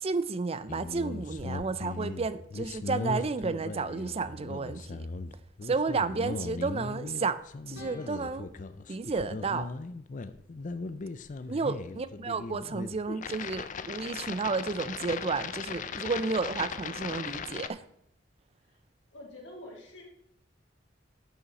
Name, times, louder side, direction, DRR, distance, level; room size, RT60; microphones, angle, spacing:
voice 1, 0.0-5.1 5.6-7.4 7.7-8.5 8.9-9.7 11.5-17.8, right 4 dB, 30° right, 14 dB, 0.5 m, -32 dB
sound 1, 0.7-17.7, left 4 dB, 45° left, 0.5 m, -38 dB
sound 2, 7.7-10.7, left 2 dB, 65° left, 2.2 m, -53 dB
voice 2, 11.8-12.2 18.7-18.8 19.1-20.0, left 1 dB, 85° left, -2 dB, 3.1 m, -47 dB
11.0 x 5.7 x 4.1 m, 0.75 s
head